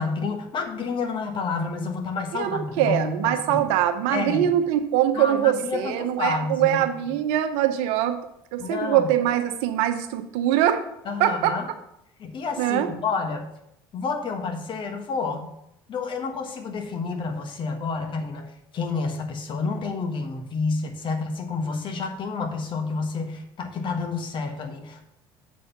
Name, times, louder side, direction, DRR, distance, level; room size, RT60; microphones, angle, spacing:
voice 1, 0.0-3.6 4.1-4.5 5.1-6.8 8.6-9.1 11.0-11.6 12.2-13.5 13.9-15.5 15.9-25.0, left 4 dB, 45° left, 5 dB, 1.4 m, -29 dB
voice 2, 2.3-8.2 8.5-10.8 11.2-11.6 12.6-12.9, right 11 dB, 65° right, 9 dB, 0.8 m, -23 dB
7.4 x 4.3 x 5.6 m, 0.79 s
hypercardioid pair, 70°, 12 cm